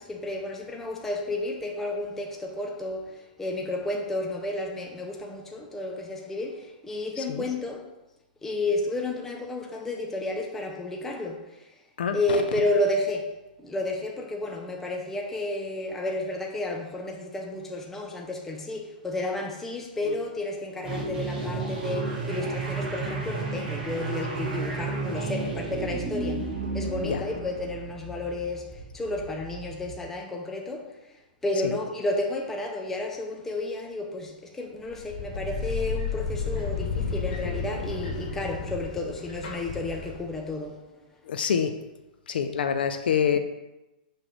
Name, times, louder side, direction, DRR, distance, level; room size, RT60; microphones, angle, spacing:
voice 1, 0.0-7.9 8.4-11.7 12.1-40.8, left 2 dB, 5° left, 0.6 m, -31 dB
voice 2, 7.1-7.5 12.0-12.6 20.0-20.2 27.0-27.3 31.5-31.8 41.3-41.7 42.3-43.4, left 7 dB, 80° left, 0.6 m, -27 dB
sound 1, 20.8-30.0, right 3 dB, 15° right, 1.9 m, -32 dB
sound 2, 34.9-40.5, left 5 dB, 60° left, 1.8 m, -32 dB
6.2 x 3.3 x 5.9 m
hypercardioid pair, 155°, 5 cm